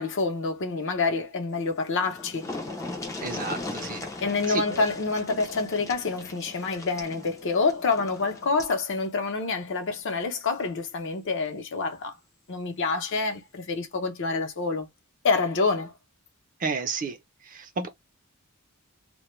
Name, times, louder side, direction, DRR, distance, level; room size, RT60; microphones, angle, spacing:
voice 1, 0.0-2.5 4.2-12.1 12.5-14.9 15.2-15.9, left 4 dB, 60° left, 0.6 m, -27 dB
sound 1, 1.7-1.8 2.0-8.8 10.1-10.2 10.6-10.7, left 2 dB, 15° left, 0.4 m, -38 dB
voice 2, 3.2-4.1 4.5-4.8 16.6-17.2 17.5-17.9, right 4 dB, 40° right, 0.5 m, -31 dB
2.2 x 2.1 x 3.0 m
head